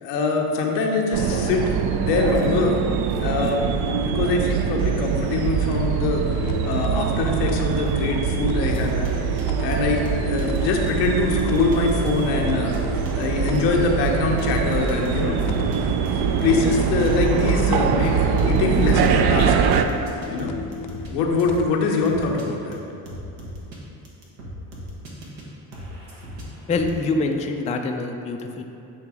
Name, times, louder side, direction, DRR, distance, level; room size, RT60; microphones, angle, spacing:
voice 1, 0.0-2.7 3.2-3.6 4.0-9.1 9.6-12.7 13.2-15.4 16.4-19.6 20.3-20.5 21.1-22.8, left 3 dB, 85° left, 0 dB, 1.0 m, -23 dB
sound 1, 1.1-19.8, right 7 dB, 50° right, 0.5 m, -23 dB
sound 2, 5.7-21.7, left 7 dB, 55° left, 0.6 m, -36 dB
sound 3, 8.7-9.1 9.4-9.5 9.7-11.1 11.4-18.1 18.4-18.6 18.9-21.1 21.4-21.6 22.0-22.4 22.7-22.8 23.0-23.8 24.0-25.4 25.7-26.9, equal, 75° right, 1.5 m, -38 dB
voice 2, 26.7-28.6, left 3 dB, 15° left, 3 dB, 0.4 m, -25 dB
8.3 x 2.9 x 4.8 m, 2.8 s
supercardioid pair, 75°, 49 cm